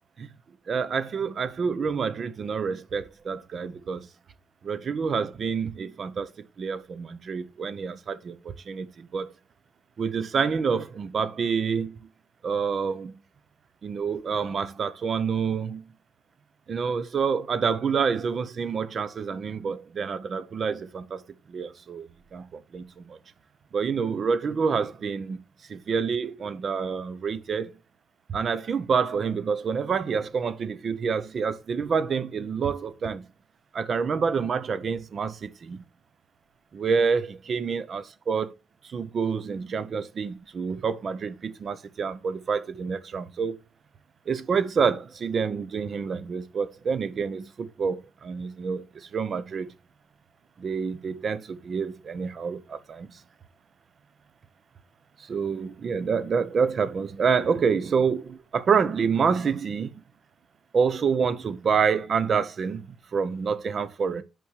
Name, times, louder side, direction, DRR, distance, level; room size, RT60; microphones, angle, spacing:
voice 1, 0.7-4.1 4.6-6.3 6.6-9.3 10.0-12.0 12.4-13.2 13.8-15.8 16.7-21.2 21.5-22.5 22.7-23.2 23.7-25.4 25.7-27.8 28.3-33.3 33.7-35.8 36.7-38.5 38.8-43.6 44.3-49.7 50.6-53.2 55.2-60.0 60.7-64.2, right 6 dB, 50° right, 0.9 m, -27 dB
5.9 x 5.3 x 6.4 m
cardioid pair, 90°, 0 cm